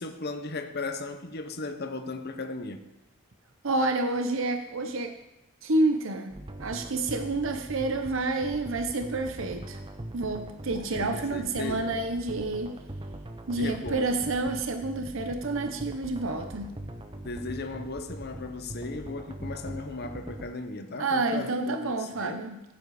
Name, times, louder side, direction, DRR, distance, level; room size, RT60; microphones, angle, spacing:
voice 1, 0.0-2.8 10.7-11.9 13.5-14.3 17.1-22.4, left 3 dB, 50° left, 0.8 m, -36 dB
voice 2, 3.6-5.1 5.6-9.8 10.1-12.8 13.5-16.8 21.0-22.6, right 2 dB, 60° right, 0.8 m, -29 dB
sound 1, 6.3-20.5, right 1 dB, 25° right, 0.8 m, -41 dB
15.5 x 7.5 x 4.8 m
head